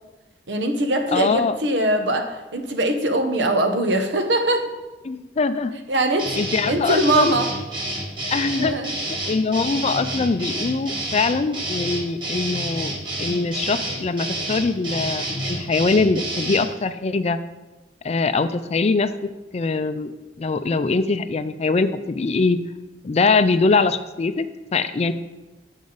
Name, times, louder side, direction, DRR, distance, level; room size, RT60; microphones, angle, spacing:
voice 1, 0.5-4.6 5.9-6.4 6.7-7.5 8.6-8.9, right 1 dB, 80° right, 5 dB, 1.0 m, -22 dB
voice 2, 1.1-1.5 5.1-5.8 6.4-7.4 8.3-8.7 9.3-12.9 13.2-17.4 18.0-19.1 19.5-20.1 20.4-22.6 23.0-25.1, left 4 dB, 40° left, 11 dB, 0.4 m, -22 dB
sound 1, 6.2-16.7, right 1 dB, 30° right, 1.5 m, -29 dB
8.6 x 6.3 x 3.9 m, 1.2 s
head